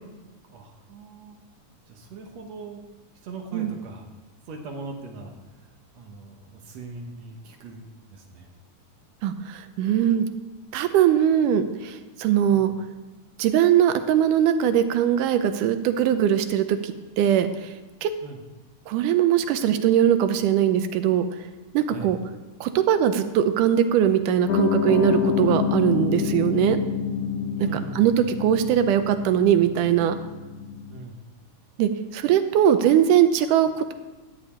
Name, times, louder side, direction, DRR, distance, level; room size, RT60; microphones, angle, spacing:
voice 1, 0.5-1.4 1.9-2.8 3.2-4.0 4.5-7.8 8.1-8.5 12.5-12.7 18.2-18.4 21.8-22.1 27.6-28.1 30.9-31.2, right 3 dB, 65° right, 2 dB, 2.2 m, -40 dB
voice 2, 9.2-10.3 10.7-12.7 13.4-17.7 18.0-18.1 18.9-21.3 21.7-22.2 22.6-26.8 27.6-27.7 28.0-30.2 31.8-33.9, right 10 dB, 90° right, 9 dB, 2.3 m, -21 dB
Piano, 24.5-31.0, left 6 dB, 80° left, 2.1 m, -27 dB
12.5 x 5.3 x 8.5 m, 1.2 s
omnidirectional pair, 3.6 m